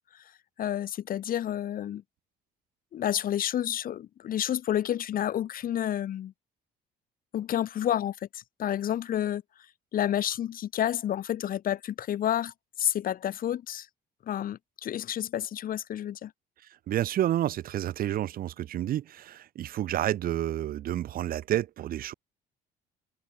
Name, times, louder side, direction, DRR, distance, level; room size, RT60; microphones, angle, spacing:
voice 1, 0.6-2.0 2.9-6.3 7.3-9.4 9.9-13.9 14.3-16.3, left 11 dB, 55° left, 2.7 m, -30 dB
voice 2, 16.9-22.1, right 12 dB, 60° right, 1.2 m, -29 dB
cardioid pair, 110°, 17 cm